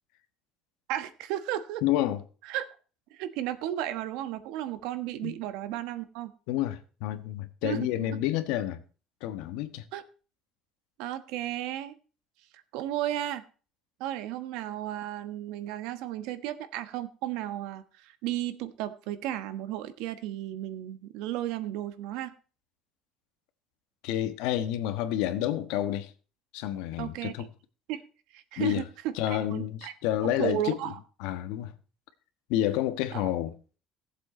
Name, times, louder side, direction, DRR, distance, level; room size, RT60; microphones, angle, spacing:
voice 1, 0.9-1.8 2.4-2.7 3.1-6.3 7.6-8.1 9.9-10.0 11.0-11.9 12.7-13.4 14.0-22.3 27.0-27.3 27.9-28.0 28.3-29.9 30.2-31.0 33.1-33.3, right 13 dB, 80° right, 1.2 m, -34 dB
voice 2, 1.8-2.2 5.2-5.4 6.5-8.8 9.2-9.8 24.0-26.1 26.5-27.5 28.6-28.8 29.2-30.8 31.2-31.7 32.5-33.5, left 12 dB, 90° left, 1.4 m, -29 dB
17.5 x 7.7 x 4.3 m
cardioid pair, 165°, 0 cm